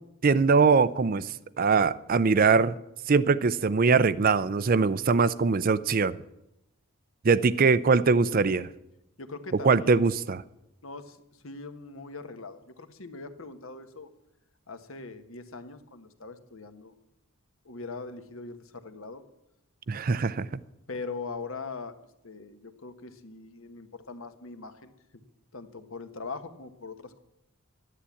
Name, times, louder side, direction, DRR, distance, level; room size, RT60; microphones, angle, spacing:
voice 1, 0.2-1.3 1.6-2.7 3.1-6.2 7.2-8.7 9.6-10.4 19.9-20.5, right 4 dB, 40° right, 0.4 m, -22 dB
voice 2, 9.2-10.0 10.8-11.2 11.4-14.1 14.7-16.9 17.6-19.2 20.9-21.9 22.2-24.9 25.5-27.2, left 4 dB, 65° left, 1.3 m, -41 dB
11.5 x 11.5 x 8.4 m
head